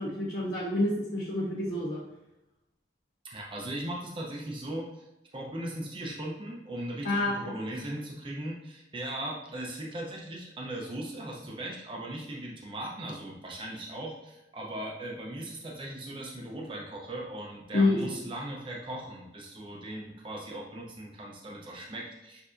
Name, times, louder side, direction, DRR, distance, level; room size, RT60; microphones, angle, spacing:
voice 1, 0.0-2.0 7.0-7.3 17.7-18.0, left 2 dB, 80° left, -11 dB, 1.5 m, -27 dB
voice 2, 3.2-5.0 5.3-22.4, right 1 dB, 30° right, -2 dB, 0.6 m, -38 dB
6.6 x 2.7 x 2.5 m, 0.93 s
head